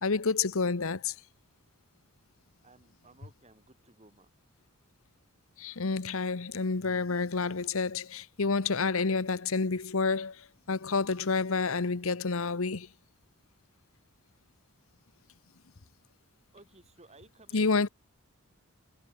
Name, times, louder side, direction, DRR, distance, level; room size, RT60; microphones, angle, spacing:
voice 1, 0.0-1.1 5.6-12.9 17.5-17.9, left 4 dB, 65° left, 0.9 m, -29 dB
voice 2, 2.6-4.3 16.5-17.6, right 2 dB, 30° right, 4.3 m, -57 dB
head